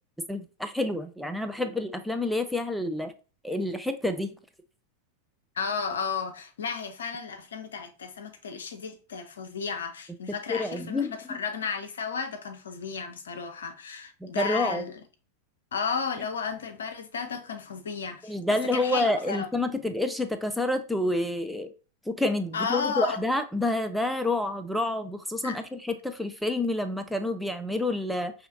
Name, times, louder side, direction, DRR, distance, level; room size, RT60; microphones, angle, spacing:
voice 1, 0.3-3.1 3.4-4.4 10.5-11.4 14.2-14.8 18.2-21.7 22.1-28.3, left 2 dB, ahead, 0.4 m, -28 dB
voice 2, 5.6-15.0 15.7-19.5 22.5-23.2 25.4-25.6, left 5 dB, 65° left, 0.6 m, -33 dB
5.5 x 2.8 x 2.6 m
figure-of-eight pair, 90°, 0 cm